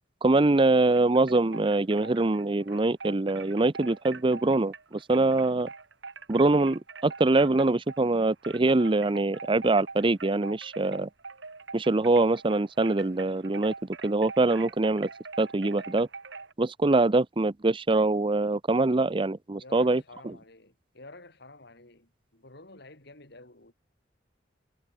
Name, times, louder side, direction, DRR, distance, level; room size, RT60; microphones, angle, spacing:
voice 1, 0.2-5.7 6.3-11.1 11.7-13.7 14.0-15.1 15.4-16.1 16.6-20.0, right 2 dB, 25° right, 0.6 m, -24 dB
sound 1, 0.9-8.1 8.4-16.5, right 4 dB, 75° right, 3.0 m, -44 dB
voice 2, 19.6-23.7, left 2 dB, 60° left, 4.8 m, -50 dB
head